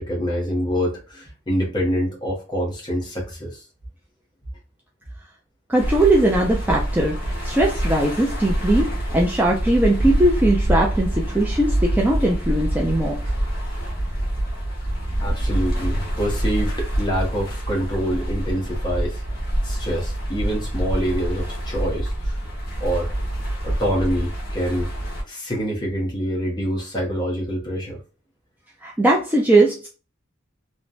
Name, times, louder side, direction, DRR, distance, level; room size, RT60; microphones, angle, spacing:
voice 1, 0.0-3.6 15.2-19.2 19.6-22.4 22.8-23.1 23.6-24.9 25.3-28.0, equal, 20° left, 1.0 m, -26 dB
voice 2, 5.7-13.2 28.8-29.9, right 1 dB, 10° right, 0.4 m, -20 dB
sound 1, 5.8-25.2, right 1 dB, 50° left, 1.2 m, -26 dB
3.0 x 2.1 x 2.5 m
head